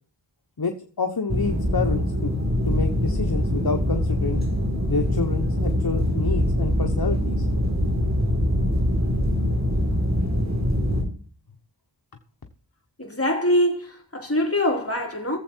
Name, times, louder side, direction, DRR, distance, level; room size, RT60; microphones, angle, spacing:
voice 1, 0.6-2.3 2.6-4.4 4.9-7.5, left 4 dB, 55° left, 1.1 m, -28 dB
sound 1, 1.3-11.0, equal, 35° right, 4.1 m, -23 dB
voice 2, 13.0-15.4, left 1 dB, 30° left, 3.4 m, -23 dB
17.0 x 7.7 x 4.5 m
wide cardioid pair, 45°, 44 cm